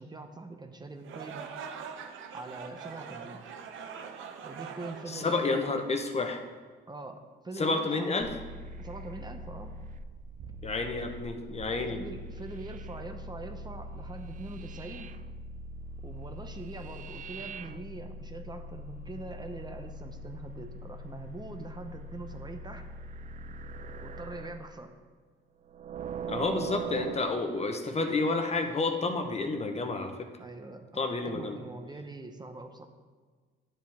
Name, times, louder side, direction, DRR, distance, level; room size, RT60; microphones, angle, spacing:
voice 1, 0.0-1.4 2.3-3.4 4.4-5.8 6.9-8.1 8.8-9.7 11.9-15.1 16.0-22.9 24.0-24.9 29.2-29.3 30.4-32.9, right 2 dB, 20° right, 6 dB, 0.8 m, -43 dB
sound 1, 1.0-6.2, right 6 dB, 80° right, 0.9 m, -43 dB
voice 2, 5.1-6.4 7.6-8.3 10.6-12.0 26.2-30.3 31.0-31.6, left 3 dB, 30° left, 5 dB, 1.0 m, -30 dB
sound 2, 8.2-24.7 25.7-27.3, right 2 dB, 40° right, 0.4 m, -42 dB
10.0 x 7.3 x 3.5 m, 1.5 s
cardioid pair, 90°, 20 cm